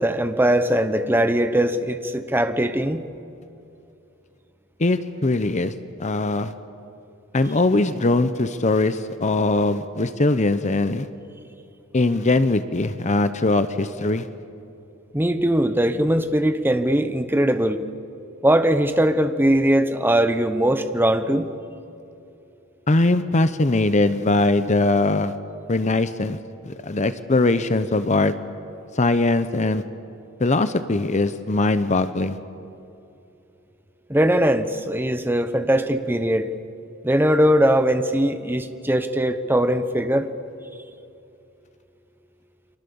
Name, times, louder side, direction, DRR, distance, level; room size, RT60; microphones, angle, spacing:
voice 1, 0.0-3.0 15.1-17.8 18.4-21.5 34.1-36.5 37.0-40.3, right 1 dB, 10° right, 9 dB, 1.0 m, -20 dB
voice 2, 4.8-5.7 6.0-6.5 7.3-11.1 11.9-14.3 22.9-25.3 25.7-26.4 26.6-28.3 28.9-29.8 30.4-32.4, left 2 dB, 35° left, 12 dB, 0.8 m, -21 dB
30.0 x 24.0 x 7.1 m, 2.7 s
head